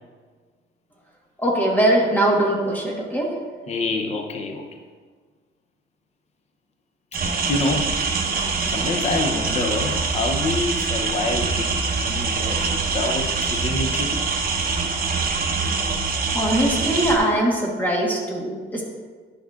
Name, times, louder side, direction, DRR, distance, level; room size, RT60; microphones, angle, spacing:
voice 1, 1.4-3.3 16.3-18.8, right 1 dB, 10° left, -2 dB, 1.3 m, -21 dB
voice 2, 3.7-4.7 7.2-8.1 8.4-14.3, left 2 dB, 30° left, 4 dB, 0.6 m, -27 dB
sound 1, 7.1-17.2, right 4 dB, 45° right, 0.9 m, -24 dB
10.0 x 6.3 x 2.4 m, 1.5 s
cardioid pair, 145°, 21 cm